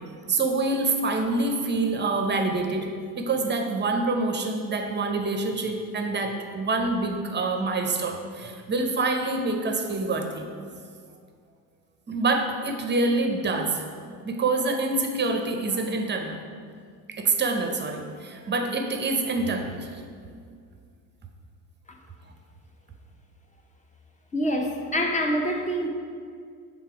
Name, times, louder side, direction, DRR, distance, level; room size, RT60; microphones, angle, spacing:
voice 1, 0.3-10.6 12.1-13.8 14.2-16.4 17.1-20.0, right 3 dB, 25° right, 4 dB, 0.7 m, -26 dB
voice 2, 24.3-25.9, equal, 15° left, 3 dB, 0.7 m, -26 dB
5.9 x 3.7 x 4.7 m, 2.1 s
supercardioid pair, 80°, 46 cm